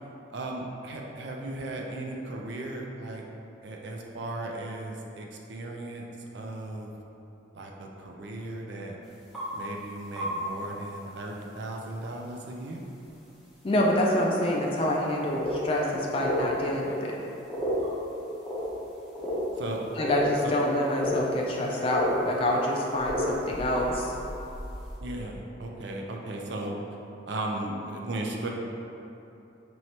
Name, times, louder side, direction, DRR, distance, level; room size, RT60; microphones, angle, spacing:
voice 1, 0.3-3.2 3.6-6.9 7.5-9.0 9.5-12.8 19.6-19.8 20.4-20.5 25.0-26.8 27.3-28.5, right 2 dB, 65° right, 0 dB, 0.5 m, -36 dB
sound 1, 9.3-9.4 10.2-10.3 10.7-10.8 11.1-11.2 13.3-13.4 14.5-14.6 15.0-15.1 15.3-15.8 16.2-16.5 17.5-17.9 18.4-18.7 19.1-20.2 20.5-20.6 20.9-21.2 21.5-21.6 21.8-22.1 23.0-25.0, equal, ahead, 0.7 m, -32 dB
voice 2, 13.6-17.2 20.0-24.1, left 1 dB, 30° left, -2 dB, 0.3 m, -27 dB
4.6 x 3.1 x 2.8 m, 2.9 s
head